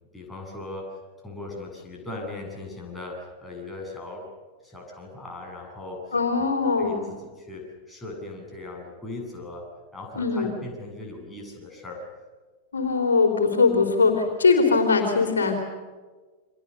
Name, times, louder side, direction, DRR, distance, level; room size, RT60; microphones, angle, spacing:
voice 1, 0.1-4.3 4.6-12.0, left 2 dB, 5° left, -1 dB, 7.9 m, -39 dB
voice 2, 6.1-7.1 10.2-10.6 12.7-15.5, left 4 dB, 70° left, 3 dB, 3.8 m, -21 dB
29.5 x 24.5 x 6.8 m, 1.4 s
figure-of-eight pair, 90°, 0 cm